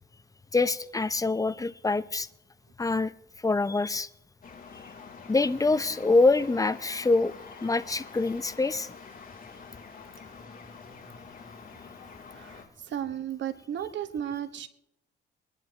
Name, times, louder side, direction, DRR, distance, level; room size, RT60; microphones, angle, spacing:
voice 1, 0.5-2.3 2.8-3.1 3.4-4.1 4.7-4.8 5.3-7.3 7.6-8.9, left 3 dB, 15° left, 14 dB, 0.6 m, -25 dB
sound 1, 4.4-12.6, left 5 dB, 45° left, 3.4 m, -47 dB
voice 2, 12.3-14.7, right 10 dB, 65° right, 10 dB, 1.4 m, -34 dB
23.0 x 11.0 x 2.9 m, 0.76 s
cardioid pair, 90°, 20 cm